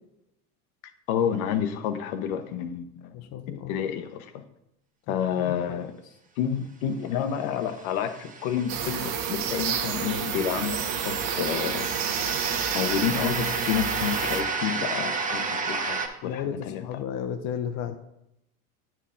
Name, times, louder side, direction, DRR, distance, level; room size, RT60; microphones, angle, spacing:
voice 1, 1.1-3.2 3.7-4.4 5.1-5.9 6.4-11.9 12.7-17.0, left 8 dB, 65° left, 8 dB, 0.9 m, -29 dB
voice 2, 3.1-3.7 5.1-5.2 5.7-5.8 16.2-18.0, left 8 dB, 40° left, 7 dB, 0.6 m, -33 dB
sound 1, 7.7-16.1, right 4 dB, 15° right, 0.8 m, -32 dB
sound 2, 8.7-14.4, right 8 dB, 50° right, 0.9 m, -30 dB
9.0 x 4.6 x 3.7 m, 0.83 s
hypercardioid pair, 100°, 46 cm